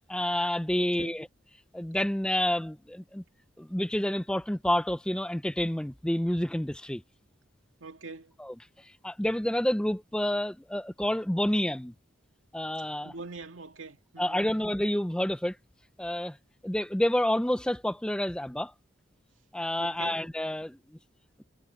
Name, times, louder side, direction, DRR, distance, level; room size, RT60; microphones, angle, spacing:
voice 1, 0.1-1.3 1.7-3.2 3.6-7.0 8.4-8.6 8.8-11.9 12.5-13.1 14.2-15.6 16.0-16.4 16.6-18.7 19.5-20.8, left 1 dB, 5° left, 0.4 m, -29 dB
voice 2, 0.8-1.2 7.8-8.3 13.0-14.5 19.8-20.2, right 3 dB, 85° right, 2.3 m, -44 dB
head